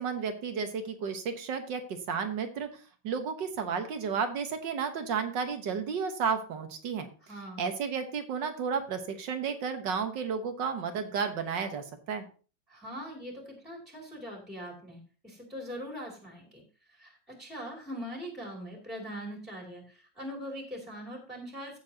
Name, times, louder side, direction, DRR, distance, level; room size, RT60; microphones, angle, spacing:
voice 1, 0.0-2.7 3.0-7.1 7.6-12.2, right 6 dB, 70° right, 7 dB, 1.9 m, -32 dB
voice 2, 7.2-7.7 12.7-21.8, equal, ahead, 0 dB, 2.6 m, -42 dB
15.5 x 7.0 x 2.9 m, 0.36 s
omnidirectional pair, 2.0 m